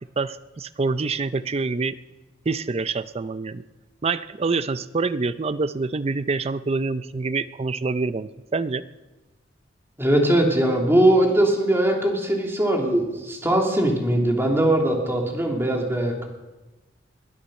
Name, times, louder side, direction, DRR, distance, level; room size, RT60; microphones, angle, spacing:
voice 1, 0.2-2.0 2.5-3.6 4.0-8.8, right 4 dB, 35° right, 14 dB, 0.5 m, -26 dB
voice 2, 10.0-16.3, right 1 dB, 15° right, 0 dB, 2.9 m, -20 dB
21.5 x 10.0 x 6.5 m, 1.1 s
head